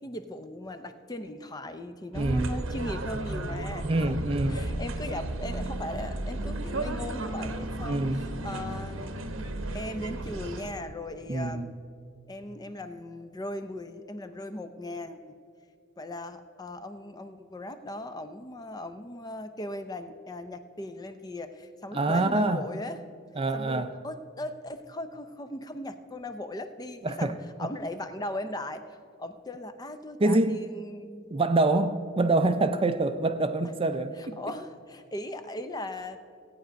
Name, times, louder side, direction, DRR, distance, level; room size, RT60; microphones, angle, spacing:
voice 1, 0.0-4.2 4.5-9.3 9.7-11.8 12.3-15.2 16.0-23.0 23.5-31.3 34.2-36.2, left 1 dB, 20° left, 9 dB, 0.5 m, -38 dB
voice 2, 2.1-2.5 3.7-4.6 7.8-8.2 11.3-11.7 21.9-22.6 23.4-23.9 27.0-27.3 27.6-27.7 30.2-30.7 31.3-34.4, right 2 dB, 30° right, 10 dB, 0.5 m, -26 dB
sound 1, 2.1-10.7, right 1 dB, 80° right, 0.9 m, -34 dB
16.5 x 8.9 x 5.2 m, 2.3 s
head